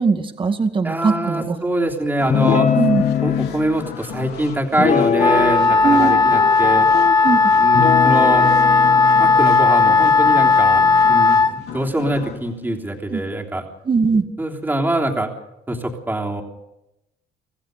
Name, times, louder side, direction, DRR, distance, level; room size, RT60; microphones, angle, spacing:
voice 1, 0.0-1.6 2.8-3.0 5.8-6.1 7.2-7.5 13.1-13.2 13.9-14.2, right 4 dB, 30° right, 7 dB, 2.1 m, -19 dB
voice 2, 0.8-2.7 3.2-6.9 7.5-8.5 9.2-10.8 11.1-13.6 14.4-15.3 15.7-16.4, right 1 dB, 10° right, 1 dB, 3.4 m, -23 dB
sound 1, 2.2-13.7, left 8 dB, 75° left, 3.1 m, -35 dB
Guitar, 2.3-3.5 4.8-5.7 6.0-7.1 7.7-11.2, left 8 dB, 45° left, 1.1 m, -22 dB
Wind instrument woodwind instrument, 5.2-11.5, left 4 dB, 25° left, 2.0 m, -15 dB
26.5 x 15.0 x 6.8 m, 0.91 s
cardioid pair, 110°, 17 cm